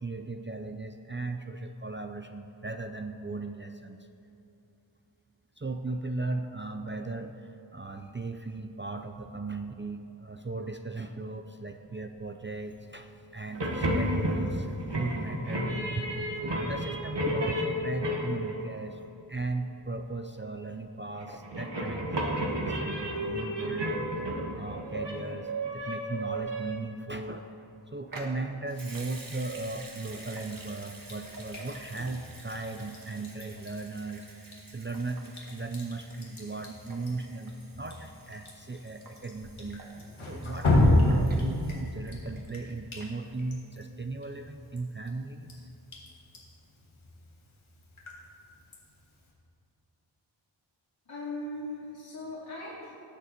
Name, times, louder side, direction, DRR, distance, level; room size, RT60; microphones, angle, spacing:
voice 1, 0.0-4.1 5.6-19.0 19.3-39.8 40.2-45.7, right 3 dB, 25° right, 5 dB, 0.5 m, -37 dB
sound 1, 13.5-18.8 21.0-26.7, equal, 60° right, 1.8 m, -32 dB
Water tap faucet / Sink (filling or washing) / Liquid, 28.1-42.7 43.0-43.1, right 2 dB, 45° right, 1.6 m, -49 dB
Drip, 31.0-49.3, left 1 dB, 85° left, 2.2 m, -33 dB
voice 2, 51.1-52.9, left 1 dB, 50° left, -8 dB, 2.6 m, -39 dB
18.5 x 7.0 x 4.5 m, 2.8 s
wide cardioid pair, 65°, 47 cm